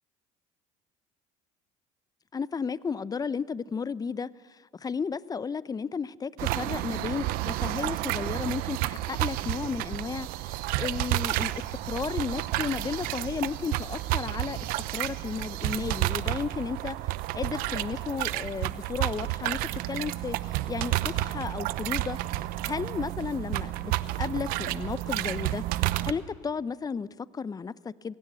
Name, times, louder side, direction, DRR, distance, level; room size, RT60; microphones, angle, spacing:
voice 1, 2.3-14.6 14.9-17.0 17.3-19.6 19.9-23.9 24.2-28.1, left 5 dB, 25° left, 0.7 m, -34 dB
sound 1, 6.4-26.1, right 16 dB, 70° right, 0.8 m, -31 dB
21.5 x 18.0 x 6.9 m
hypercardioid pair, 75°, 16 cm